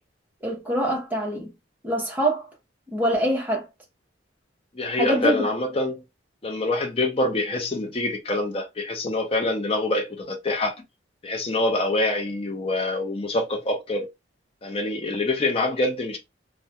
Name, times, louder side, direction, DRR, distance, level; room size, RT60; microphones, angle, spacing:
voice 1, 0.4-1.5 1.8-2.5 2.9-3.7 4.9-5.4, right 1 dB, 10° right, 0.8 m, -24 dB
voice 2, 4.7-6.0 6.4-10.7 11.2-14.1 14.6-16.2, left 2 dB, 30° left, 0.5 m, -25 dB
2.3 x 2.1 x 2.7 m
head